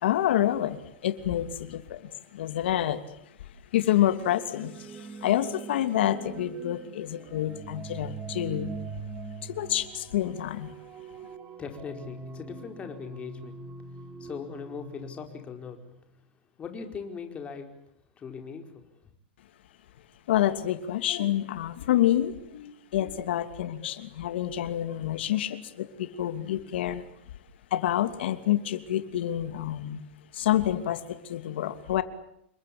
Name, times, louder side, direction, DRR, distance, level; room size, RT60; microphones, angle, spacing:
voice 1, 0.0-2.0 2.3-3.0 3.7-4.7 5.0-8.7 9.5-10.7 20.3-27.0 27.7-30.0 30.3-32.0, left 12 dB, 75° left, 10 dB, 2.9 m, -28 dB
sound 1, 4.1-16.0, right 4 dB, 20° right, 4.2 m, -43 dB
voice 2, 11.6-13.6 14.2-15.8 16.6-17.7 18.2-18.8, left 6 dB, 20° left, 5 dB, 4.9 m, -39 dB
29.0 x 23.5 x 8.7 m, 0.75 s
supercardioid pair, 150°, 6 cm